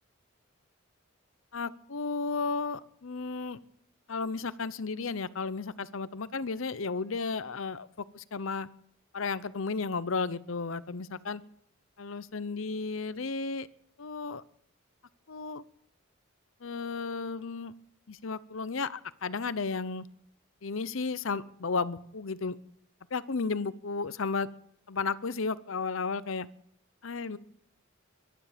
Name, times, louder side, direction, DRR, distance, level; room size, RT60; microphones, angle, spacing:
voice 1, 1.5-3.6 4.1-7.9 8.1-8.7 9.1-11.4 12.0-13.7 14.0-14.4 15.3-15.6 16.6-17.7 18.1-20.1 20.6-22.6 23.1-24.5 24.9-26.5 27.0-27.4, left 4 dB, 70° left, 16 dB, 0.7 m, -33 dB
23.0 x 12.0 x 5.1 m, 0.69 s
head